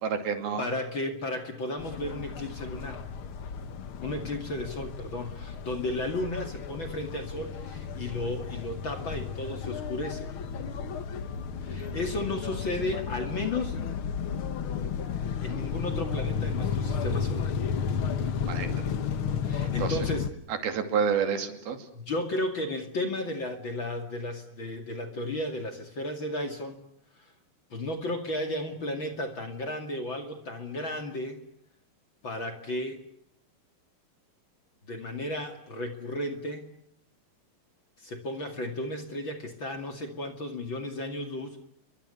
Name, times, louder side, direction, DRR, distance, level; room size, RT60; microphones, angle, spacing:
voice 1, 0.0-0.7 18.5-18.8 19.8-20.0 20.5-21.9, right 6 dB, 80° right, 7 dB, 4.4 m, -29 dB
voice 2, 0.6-3.0 4.0-10.3 11.6-13.8 15.4-17.5 19.4-20.3 21.9-26.8 27.2-27.3 27.7-31.4 32.2-33.0 34.9-36.7 38.0-41.6, left 1 dB, 35° left, 5 dB, 2.6 m, -34 dB
sound 1, 1.8-20.3, left 6 dB, 70° left, 1.3 m, -33 dB
29.5 x 23.5 x 7.0 m, 0.71 s
omnidirectional pair, 4.3 m